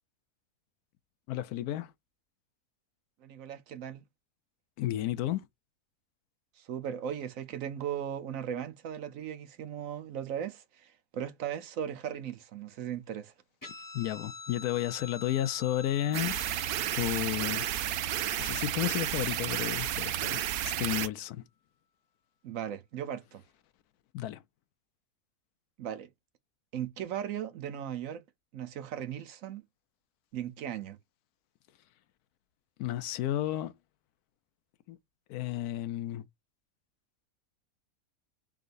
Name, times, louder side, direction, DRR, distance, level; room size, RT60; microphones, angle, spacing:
voice 1, 1.3-1.9 4.8-5.5 13.9-16.4 16.9-17.7 18.4-21.4 24.1-24.4 32.8-33.7 34.9-35.0 35.3-36.2, left 13 dB, 85° left, 1.1 m, -32 dB
voice 2, 3.2-4.0 6.6-13.3 22.4-23.4 25.8-26.1 26.7-28.2 28.5-29.6 30.3-31.0, right 9 dB, 65° right, 1.0 m, -37 dB
Guitar, 13.6-20.5, left 4 dB, 15° left, 1.0 m, -48 dB
sound 1, 16.1-21.1, right 12 dB, 90° right, 1.1 m, -32 dB
3.9 x 3.8 x 2.4 m
omnidirectional pair, 1.6 m